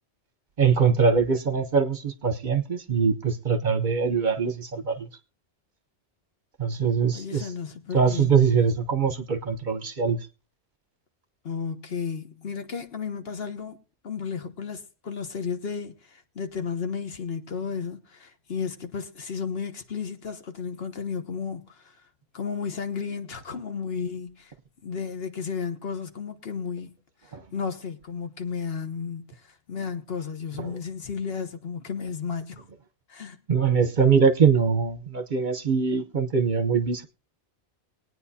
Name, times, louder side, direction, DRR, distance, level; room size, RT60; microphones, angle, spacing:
voice 1, 0.6-5.1 6.6-7.4 7.9-10.2 30.6-30.8 33.5-37.1, right 6 dB, 50° right, 0.9 m, -22 dB
voice 2, 7.1-8.5 11.4-13.8 14.0-22.0 22.3-24.5 24.8-26.9 27.2-32.6 33.1-33.4, left 6 dB, 60° left, 1.3 m, -33 dB
21.0 x 9.2 x 2.7 m
omnidirectional pair, 1.1 m